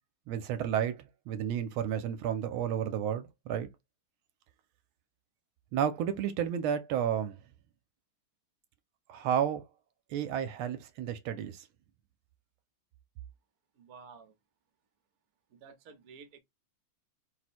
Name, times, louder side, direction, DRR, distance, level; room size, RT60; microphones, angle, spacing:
voice 1, 0.3-3.7 5.7-7.4 9.1-9.6 10.1-11.7, right 9 dB, 80° right, 1.4 m, -32 dB
voice 2, 13.8-14.3 15.5-16.4, right 5 dB, 55° right, 1.0 m, -52 dB
4.5 x 2.1 x 4.2 m
omnidirectional pair, 2.4 m